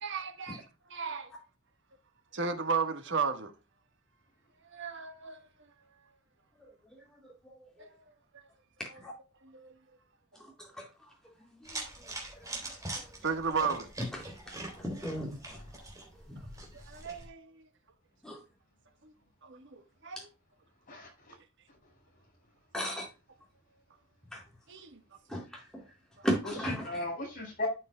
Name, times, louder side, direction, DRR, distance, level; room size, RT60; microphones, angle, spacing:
voice 1, 0.0-0.6 0.9-1.3 2.3-3.5 4.7-5.5 7.8-7.9 9.5-9.7 13.2-13.9 16.7-17.6 19.0-19.1 19.4-20.2 24.7-25.0 26.2-26.3, right 5 dB, 55° right, 1.4 m, -34 dB
voice 2, 6.6-7.9 9.0-9.1 10.3-10.9 11.5-12.1 12.6-13.1 14.1-15.6 16.1-16.4 18.2-18.4 20.2-20.3 22.7-23.1 24.3-24.4 25.3-25.8 26.2-26.8, equal, 5° left, 4.2 m, -38 dB
sound 1, 11.6-17.3, right 2 dB, 15° right, 3.3 m, -43 dB
voice 3, 20.9-21.4 26.4-27.7, left 2 dB, 40° left, 5.3 m, -37 dB
12.5 x 7.1 x 2.3 m
head